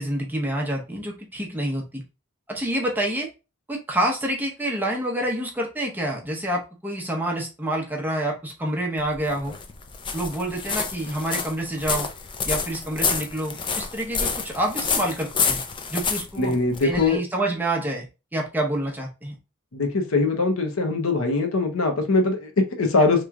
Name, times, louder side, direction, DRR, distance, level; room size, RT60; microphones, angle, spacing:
voice 1, 0.0-2.0 2.5-3.3 3.7-9.5 10.1-12.1 12.4-15.6 15.9-16.5 16.8-18.1 18.3-19.3, right 1 dB, 10° right, -1 dB, 0.7 m, -27 dB
sound 1, 9.0-17.2, left 5 dB, 20° left, 0.3 m, -28 dB
voice 2, 16.4-17.2 19.7-23.2, left 3 dB, 65° left, 5 dB, 0.7 m, -22 dB
3.0 x 2.3 x 3.5 m, 0.29 s
head